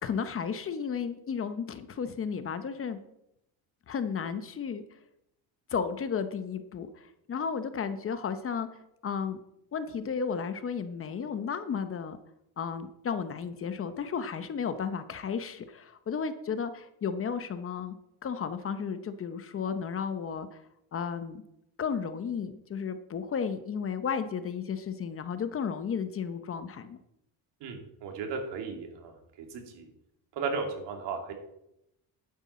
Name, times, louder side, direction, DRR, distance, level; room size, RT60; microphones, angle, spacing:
voice 1, 0.0-3.0 3.9-4.8 5.7-8.7 9.0-9.4 9.7-12.2 12.6-18.0 18.2-20.6 20.9-21.4 21.8-27.0, left 6 dB, 30° left, 10 dB, 0.8 m, -33 dB
voice 2, 27.6-29.1 29.5-29.9 30.4-31.3, right 4 dB, 75° right, 3 dB, 2.5 m, -35 dB
11.5 x 9.6 x 4.3 m, 0.81 s
cardioid pair, 135°, 42 cm